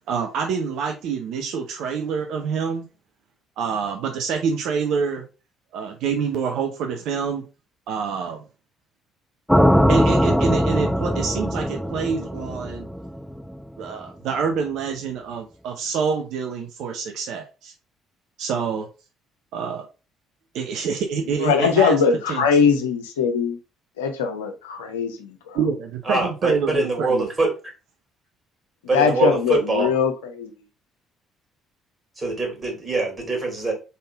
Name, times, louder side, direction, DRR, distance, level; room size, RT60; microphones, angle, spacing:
voice 1, 0.1-2.9 3.6-5.2 5.7-7.4 7.9-8.4 9.9-12.9 13.8-17.7 18.4-18.9 19.5-19.8 20.5-22.4 25.5-27.3, right 6 dB, 60° right, 3 dB, 0.7 m, -26 dB
sound 1, 9.5-13.6, equal, ahead, 0.4 m, -20 dB
voice 2, 21.4-23.6 24.0-25.6 28.9-30.5, left 6 dB, 75° left, 6 dB, 0.6 m, -21 dB
voice 3, 26.1-27.5 28.9-29.9 32.2-33.7, right 2 dB, 25° right, 0 dB, 2.8 m, -23 dB
4.1 x 3.6 x 3.5 m, 0.31 s
figure-of-eight pair, 50°, 0 cm